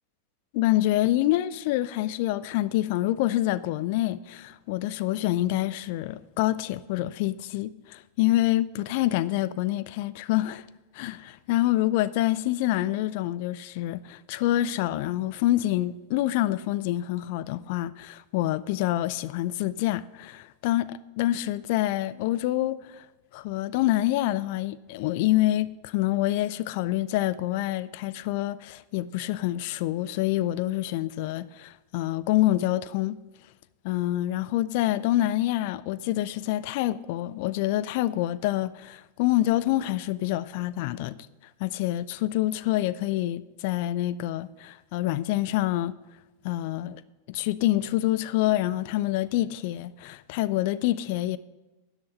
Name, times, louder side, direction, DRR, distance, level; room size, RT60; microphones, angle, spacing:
voice 1, 0.5-10.6 10.9-23.0 23.3-33.2 33.8-41.2 41.6-45.9 46.4-47.0 47.3-51.4, left 15 dB, 50° left, 0.5 m, -26 dB
12.5 x 8.0 x 5.5 m
figure-of-eight pair, 90°, 0 cm